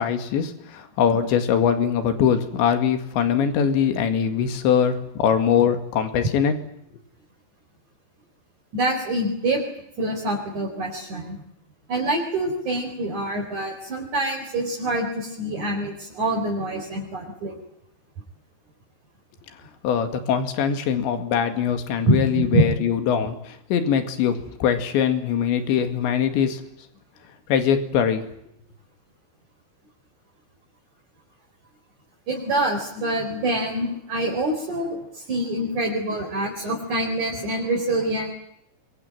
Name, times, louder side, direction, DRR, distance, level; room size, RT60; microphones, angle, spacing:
voice 1, 0.0-6.5 19.8-26.6 27.5-28.3, left 8 dB, 80° left, 8 dB, 4.4 m, -22 dB
voice 2, 8.7-9.6 10.0-11.4 11.9-17.5 22.1-22.7 32.3-38.3, right 1 dB, 45° right, -1 dB, 5.4 m, -25 dB
24.5 x 23.0 x 9.0 m, 0.75 s
omnidirectional pair, 5.1 m